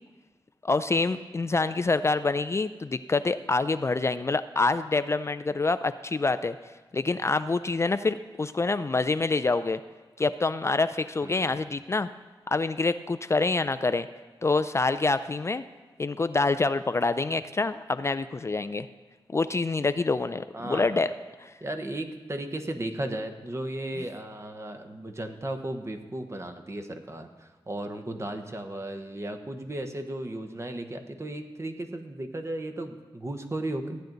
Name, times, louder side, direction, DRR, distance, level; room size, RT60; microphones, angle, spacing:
voice 1, 0.6-6.6 6.9-9.8 10.2-12.1 12.5-14.1 14.4-15.6 16.0-18.9 19.3-21.1 21.4-21.5, left 3 dB, 30° left, 12 dB, 0.4 m, -26 dB
voice 2, 11.2-11.5 20.5-21.0 21.6-34.0, right 1 dB, 30° right, 6 dB, 1.0 m, -35 dB
14.5 x 9.2 x 3.9 m, 1.3 s
cardioid pair, 65°, 9 cm